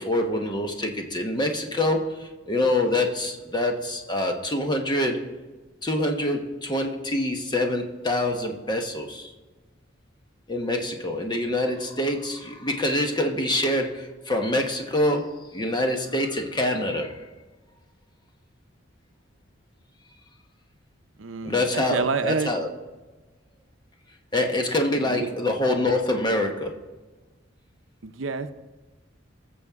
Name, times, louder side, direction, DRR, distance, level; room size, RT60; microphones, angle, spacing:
voice 1, 0.0-5.3 5.8-9.3 10.5-17.3 21.4-22.7 24.3-26.8, left 1 dB, 25° left, 3 dB, 1.1 m, -25 dB
voice 2, 21.2-22.5 25.0-25.3 28.0-28.5, right 4 dB, 90° right, 10 dB, 0.7 m, -28 dB
19.5 x 7.2 x 3.6 m, 1.2 s
head